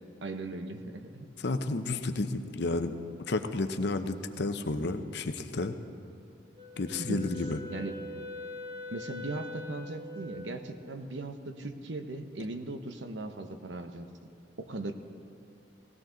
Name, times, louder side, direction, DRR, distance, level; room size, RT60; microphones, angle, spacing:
voice 1, 0.2-1.3 7.0-7.4 7.7-8.0 8.9-14.1 14.6-14.9, right 2 dB, 80° right, 7 dB, 0.9 m, -38 dB
voice 2, 1.4-2.9 3.3-5.7 6.8-7.6, left 2 dB, 65° left, 8 dB, 0.7 m, -31 dB
Wind instrument woodwind instrument, 6.6-10.6, left 2 dB, 30° right, 2.3 m, -43 dB
18.5 x 16.5 x 3.9 m, 2.5 s
head